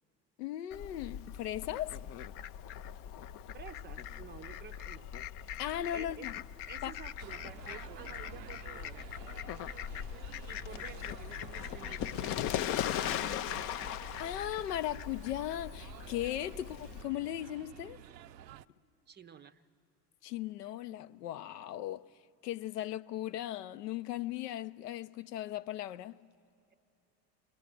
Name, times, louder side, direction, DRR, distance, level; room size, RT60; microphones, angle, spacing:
voice 1, 0.4-2.0 5.6-6.4 6.8-6.9 14.2-18.0 20.2-22.0 22.4-26.2, left 12 dB, 70° left, 0.6 m, -37 dB
Fowl, 0.7-17.0, left 10 dB, 30° left, 0.4 m, -40 dB
voice 2, 3.5-5.1 5.4-5.6 5.9-6.3 6.7-9.1 10.4-12.4 13.0-13.8 16.5-16.6 19.1-19.7, right 7 dB, 20° right, 0.6 m, -51 dB
sound 1, 7.2-18.7, right 11 dB, 80° right, 0.6 m, -51 dB
23.0 x 18.0 x 7.5 m
figure-of-eight pair, 70°, 49 cm